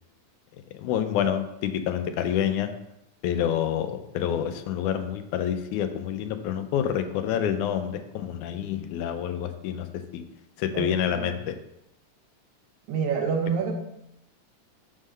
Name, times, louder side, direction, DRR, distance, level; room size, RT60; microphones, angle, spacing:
voice 1, 0.7-2.7 3.2-9.9 10.1-10.2 10.6-11.6, left 9 dB, 85° left, 8 dB, 2.0 m, -28 dB
voice 2, 10.7-11.4 12.9-13.7, right 6 dB, 70° right, 1 dB, 2.3 m, -28 dB
7.2 x 3.8 x 6.4 m, 0.83 s
omnidirectional pair, 3.5 m